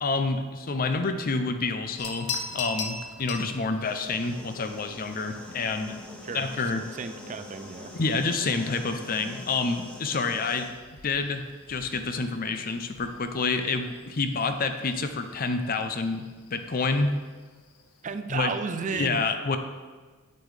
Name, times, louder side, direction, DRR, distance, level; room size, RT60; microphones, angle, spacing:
voice 1, 0.0-5.9 6.3-6.8 7.9-10.7 11.0-16.3 16.5-17.1 18.3-18.5 18.9-19.6, left 3 dB, 40° left, 8 dB, 0.5 m, -28 dB
sound 1, 2.0-18.1, left 4 dB, 85° left, 0.8 m, -43 dB
sound 2, 3.8-10.7, left 1 dB, 5° left, 0.9 m, -44 dB
voice 2, 6.9-7.9 18.0-19.2, right 5 dB, 35° right, 9 dB, 0.4 m, -33 dB
8.4 x 8.1 x 3.3 m, 1.4 s
head